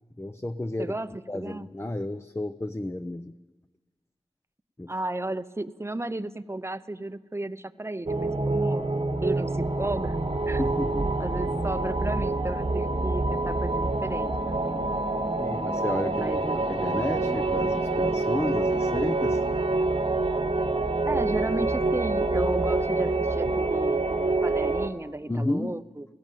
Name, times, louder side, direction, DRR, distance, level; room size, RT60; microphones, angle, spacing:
voice 1, 0.2-0.9 1.3-3.3 4.8-4.9 10.6-11.1 15.4-16.3 16.7-19.4 25.3-25.8, left 1 dB, 20° left, 9 dB, 0.6 m, -32 dB
voice 2, 0.8-1.7 4.9-8.8 9.2-10.2 10.5-10.6 11.2-14.9 16.2-16.6 21.0-26.1, right 2 dB, 20° right, 13 dB, 0.7 m, -33 dB
sound 1, 8.1-24.9, right 2 dB, 50° right, 1.2 m, -26 dB
19.0 x 16.0 x 9.2 m, 1.3 s
wide cardioid pair, 65°, 12 cm